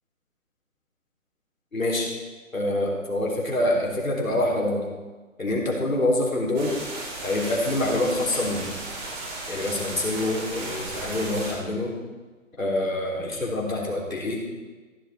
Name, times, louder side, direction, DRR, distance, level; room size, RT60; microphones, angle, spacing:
voice 1, 1.7-2.1 2.5-4.9 5.4-6.8 7.2-8.7 9.5-12.0 12.6-14.4, left 1 dB, 85° left, -2 dB, 3.6 m, -26 dB
sound 1, 6.6-11.5, right 2 dB, 35° right, 3.5 m, -35 dB
15.0 x 7.9 x 4.3 m, 1.3 s
figure-of-eight pair, 145°, 40 cm